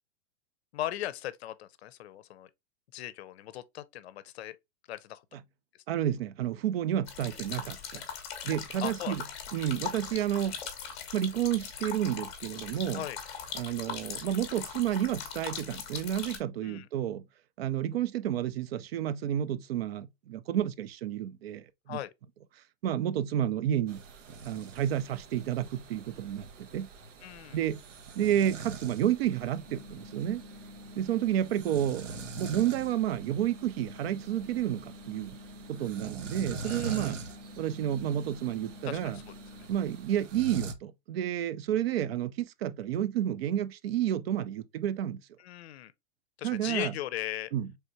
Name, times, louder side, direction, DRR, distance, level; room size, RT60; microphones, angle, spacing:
voice 1, 0.7-2.5 2.9-4.6 4.9-5.3 5.7-5.8 7.9-8.0 8.8-9.1 12.9-13.2 16.6-16.9 21.9-22.1 27.2-27.6 36.6-37.1 38.8-39.7 45.4-45.9 46.4-47.5, left 13 dB, 60° left, 0.5 m, -38 dB
voice 2, 5.9-8.0 8.4-9.2 9.5-10.6 11.1-13.0 13.5-17.2 17.6-22.0 22.8-24.0 24.4-26.9 27.5-27.8 28.2-30.4 31.0-35.4 35.7-37.2 37.6-39.2 39.7-45.2 46.4-46.9 47.5-47.7, right 11 dB, 55° right, 0.5 m, -30 dB
sound 1, 7.1-16.4, left 7 dB, 15° left, 0.7 m, -40 dB
sound 2, 23.9-40.7, right 4 dB, 90° right, 0.9 m, -44 dB
sound 3, 29.6-39.7, left 2 dB, 25° right, 0.7 m, -49 dB
4.5 x 3.4 x 2.6 m
supercardioid pair, 165°, 36 cm